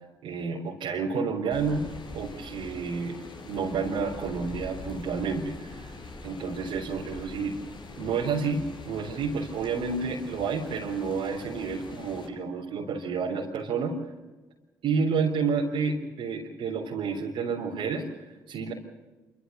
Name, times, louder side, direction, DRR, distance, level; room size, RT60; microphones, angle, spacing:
voice 1, 0.2-3.2 3.5-6.0 6.2-7.6 8.0-14.0 14.8-18.7, right 5 dB, 65° right, -4 dB, 3.9 m, -30 dB
Rain, 1.5-12.3, left 3 dB, 50° left, 7.1 m, -43 dB
28.5 x 14.0 x 6.9 m, 1.2 s
hypercardioid pair, 50°, 10 cm